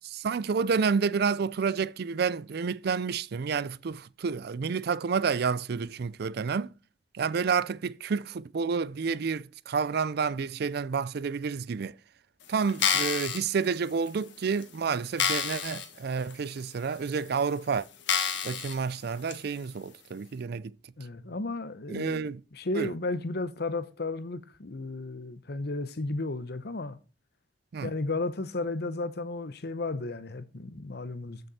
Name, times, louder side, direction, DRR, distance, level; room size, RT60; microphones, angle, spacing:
voice 1, 0.0-6.7 7.1-12.0 12.5-17.9 18.4-20.8 21.9-22.4 22.7-22.9 27.7-27.9, right 5 dB, 60° right, 0.4 m, -29 dB
sound 1, 12.7-13.4 14.1-14.2 14.6-14.7 15.2-15.9 16.3-16.4 17.2-17.3 18.1-18.8 19.3-19.4, left 7 dB, 80° left, 1.6 m, -28 dB
voice 2, 21.0-22.2 22.5-27.0 27.8-31.4, left 2 dB, 60° left, 0.9 m, -33 dB
13.5 x 6.6 x 4.2 m
head